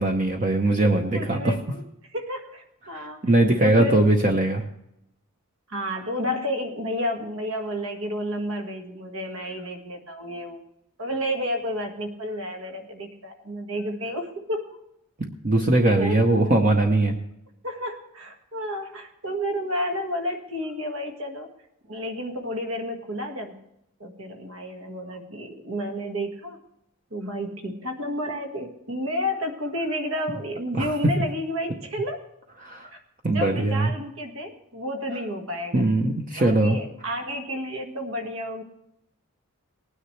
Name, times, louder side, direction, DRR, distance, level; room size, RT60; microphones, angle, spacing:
voice 1, 0.0-1.5 2.9-4.6 15.2-17.2 30.7-30.9 32.6-32.9 33.2-33.9 35.7-36.8, right 2 dB, 35° right, 3 dB, 0.9 m, -21 dB
voice 2, 1.1-3.2 3.6-4.1 5.7-10.6 11.0-14.8 16.0-16.2 17.6-21.5 21.9-23.5 24.0-26.6 27.1-32.2 32.9-33.0 33.2-35.8 36.4-38.6, equal, 70° right, 4 dB, 1.8 m, -31 dB
19.5 x 9.8 x 3.3 m, 0.83 s
head